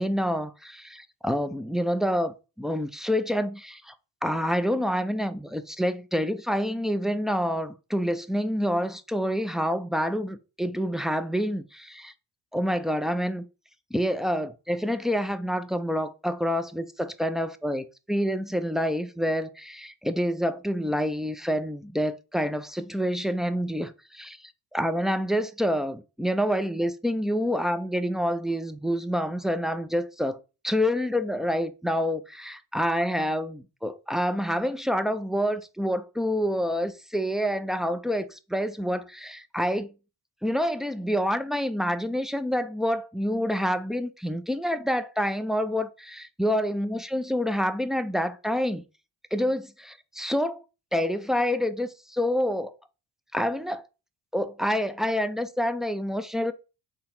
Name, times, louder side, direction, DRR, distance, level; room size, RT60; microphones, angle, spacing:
voice 1, 0.0-3.9 4.2-12.1 12.5-13.4 13.9-24.4 24.7-30.4 30.6-39.9 40.4-48.8 49.3-50.6 50.9-52.7 53.3-53.8 54.3-56.5, equal, ahead, 0.4 m, -27 dB
3.9 x 3.2 x 4.2 m
supercardioid pair, 45°, 50 cm